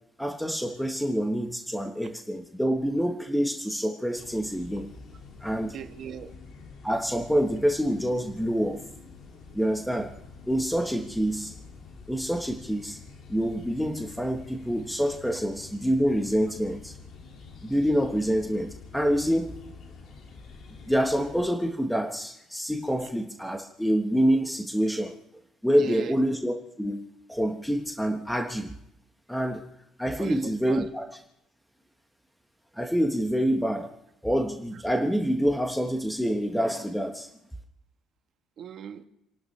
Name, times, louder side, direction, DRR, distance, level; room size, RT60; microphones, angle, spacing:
voice 1, 0.2-4.9 5.4-5.8 6.8-8.8 9.5-10.2 10.5-11.5 12.1-13.0 13.3-16.9 17.6-19.6 20.9-25.1 25.6-27.0 27.3-28.7 29.3-29.6 30.0-31.1 32.7-33.9 34.2-37.3, equal, ahead, 3 dB, 1.1 m, -26 dB
sound 1, 4.1-21.5, left 4 dB, 55° left, 2.1 m, -47 dB
voice 2, 5.6-6.3 23.0-23.1 25.7-26.2 30.2-30.9 38.6-39.1, right 8 dB, 45° right, 6 dB, 1.3 m, -38 dB
29.5 x 12.0 x 3.2 m, 0.81 s
cardioid pair, 145°, 0 cm